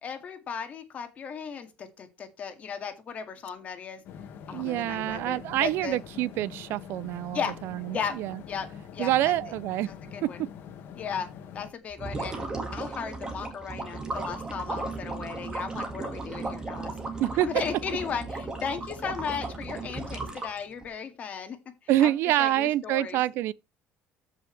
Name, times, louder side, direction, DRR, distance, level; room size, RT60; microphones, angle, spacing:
voice 1, 0.0-4.0 4.5-6.0 7.3-7.5 7.9-8.1 8.5-8.7 8.9-9.3 9.9-10.4 11.0-11.3 11.5-12.5 12.7-17.0 17.4-21.6 21.8-23.2, left 6 dB, 30° left, 2.0 m, -36 dB
sound 1, 4.0-11.7, left 7 dB, 50° left, 1.7 m, -44 dB
voice 2, 4.5-8.4 9.0-9.9 10.2-10.5 17.2-17.5 21.9-23.5, right 14 dB, 60° right, 0.4 m, -26 dB
sound 2, 11.9-20.9, right 3 dB, 15° right, 1.9 m, -35 dB
14.0 x 5.8 x 3.3 m
cardioid pair, 170°, 5 cm